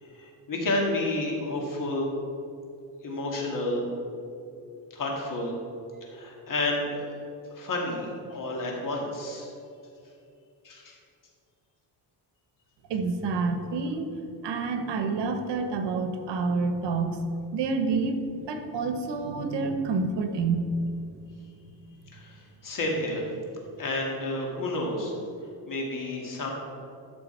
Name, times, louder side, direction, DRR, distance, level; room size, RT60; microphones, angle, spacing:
voice 1, 0.0-2.1 3.0-3.9 4.9-5.6 6.1-7.1 7.5-9.5 10.6-11.0 22.1-23.3 23.8-25.1 25.7-26.5, left 2 dB, 50° left, -1 dB, 2.2 m, -30 dB
voice 2, 12.9-14.1 14.4-17.2 17.5-20.7, right 4 dB, 85° right, 7 dB, 1.2 m, -28 dB
12.5 x 6.4 x 4.5 m, 2.6 s
cardioid pair, 125°, 41 cm